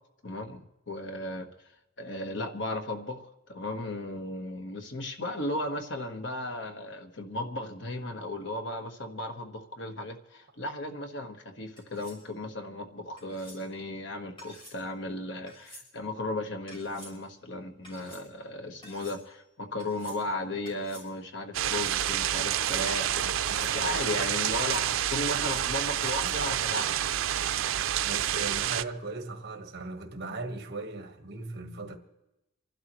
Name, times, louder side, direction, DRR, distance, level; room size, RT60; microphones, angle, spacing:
voice 1, 0.2-1.5 2.0-27.0, left 1 dB, 65° left, 1.4 m, -35 dB
sound 1, 11.8-12.2 13.2-13.6 14.4-14.8 15.5-15.9 16.7-17.1 17.8-18.2 18.8-19.2 19.8-20.2 20.6-21.1 21.6-22.0 22.5-23.0 23.4-23.8 24.4-24.9 25.3-25.8 26.1-26.3, equal, 25° left, 6.3 m, -50 dB
sound 2, 21.5-28.8, right 11 dB, 85° right, 0.5 m, -28 dB
voice 2, 28.0-32.0, right 3 dB, 60° right, 1.5 m, -38 dB
29.0 x 12.0 x 3.1 m
head